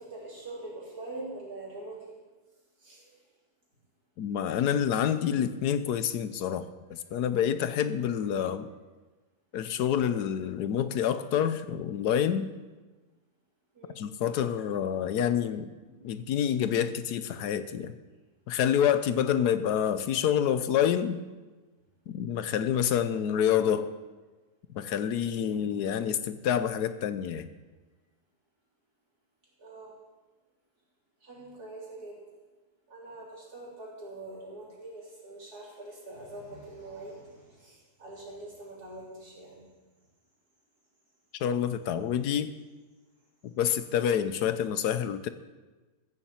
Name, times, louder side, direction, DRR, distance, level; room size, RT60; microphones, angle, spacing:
voice 1, 0.0-2.2 2.8-3.2 10.1-10.3 13.7-14.0 15.0-15.1 15.6-16.4 16.9-17.1 25.5-25.7 29.6-30.0 31.2-32.2 32.9-39.7, right 2 dB, 75° right, -4 dB, 4.1 m, -44 dB
voice 2, 4.2-8.7 9.5-12.5 14.0-15.7 16.0-17.9 18.5-21.2 22.1-23.9 24.7-27.5 41.4-42.5 43.4-45.3, left 9 dB, 80° left, 11 dB, 1.3 m, -27 dB
14.5 x 7.2 x 7.4 m, 1.2 s
omnidirectional pair, 1.7 m